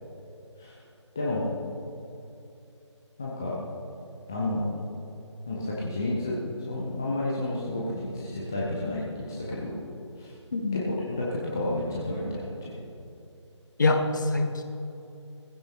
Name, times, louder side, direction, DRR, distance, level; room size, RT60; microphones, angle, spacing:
voice 1, 1.2-1.5 3.2-3.6 4.3-4.6 5.5-9.8 10.2-10.3 10.7-12.8, left 2 dB, 5° left, -5 dB, 0.4 m, -31 dB
voice 2, 10.5-10.8 13.8-14.6, left 2 dB, 40° left, 5 dB, 1.2 m, -25 dB
19.0 x 15.0 x 2.8 m, 2.7 s
figure-of-eight pair, 155°, 16 cm